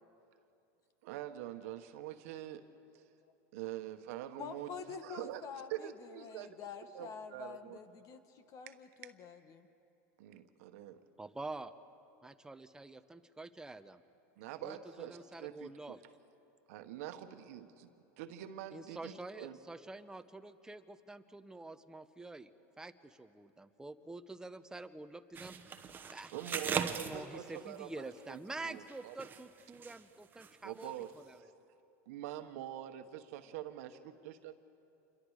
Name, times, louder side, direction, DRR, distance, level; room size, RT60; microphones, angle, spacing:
voice 1, 1.0-2.7 2.9-3.0 3.5-5.4 5.7-6.5 6.9-7.8 8.7-8.8 10.2-11.0 14.4-15.7 16.7-17.9 18.2-19.6 26.3-29.1 30.6-31.1 32.1-34.5, right 12 dB, 70° right, 8 dB, 1.3 m, -45 dB
voice 2, 4.4-9.7, left 6 dB, 40° left, 10 dB, 1.5 m, -47 dB
voice 3, 11.2-11.7 12.2-14.0 14.6-16.0 18.7-22.5 22.8-26.3 26.8-31.5, right 2 dB, 10° right, 10 dB, 0.8 m, -47 dB
sound 1, 25.3-27.8 28.6-30.0 30.3-30.5 30.8-30.9, right 6 dB, 25° right, 1.1 m, -40 dB
28.0 x 23.0 x 5.0 m, 2.7 s
supercardioid pair, 120°, 8 cm